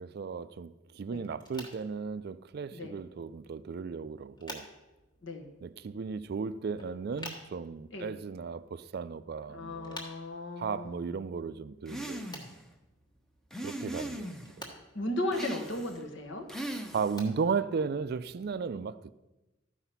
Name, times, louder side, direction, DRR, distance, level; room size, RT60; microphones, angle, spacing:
voice 1, 0.0-4.7 5.6-10.0 10.6-12.4 13.6-14.4 16.7-19.1, right 5 dB, 50° right, 0.3 m, -35 dB
sound 1, 1.3-18.6, left 1 dB, 20° left, 1.3 m, -52 dB
voice 2, 9.5-11.2 14.9-16.5, left 1 dB, 65° left, 1.3 m, -36 dB
sound 2, 11.9-12.6 13.5-14.6 15.3-16.0 16.5-17.3, right 1 dB, ahead, 0.6 m, -39 dB
13.0 x 4.9 x 5.7 m
head